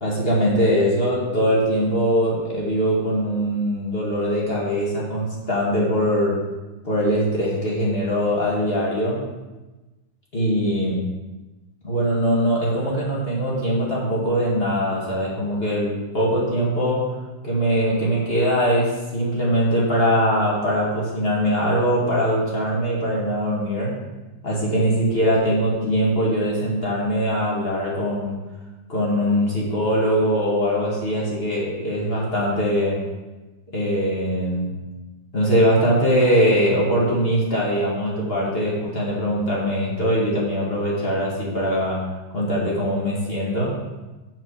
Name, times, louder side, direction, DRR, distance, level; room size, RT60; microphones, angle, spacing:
voice 1, 0.0-6.4 6.8-9.2 10.3-11.1 11.8-17.1 17.4-23.9 24.4-28.3 28.9-33.0 33.7-34.7 35.3-43.8, equal, 30° left, -5 dB, 1.2 m, -22 dB
7.2 x 4.6 x 6.5 m, 1.1 s
omnidirectional pair, 3.4 m